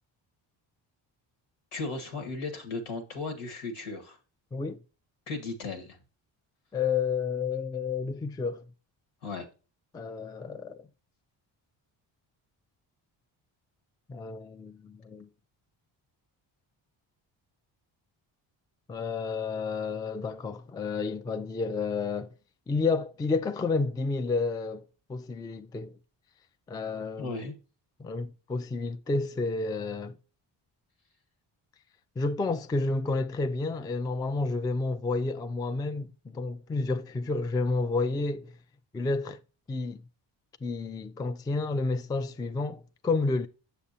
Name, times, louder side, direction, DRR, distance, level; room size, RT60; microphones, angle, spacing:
voice 1, 1.7-4.2 5.3-6.0 9.2-9.4 27.2-27.5, left 3 dB, 80° left, 1.8 m, -36 dB
voice 2, 6.7-8.6 9.9-10.9 14.1-15.3 18.9-22.3 22.7-25.9 26.7-27.3 28.0-30.2 32.2-38.5 38.9-39.4 39.7-40.0 40.6-43.5, left 3 dB, 10° left, 0.3 m, -30 dB
7.0 x 6.7 x 2.7 m
supercardioid pair, 60°, 50 cm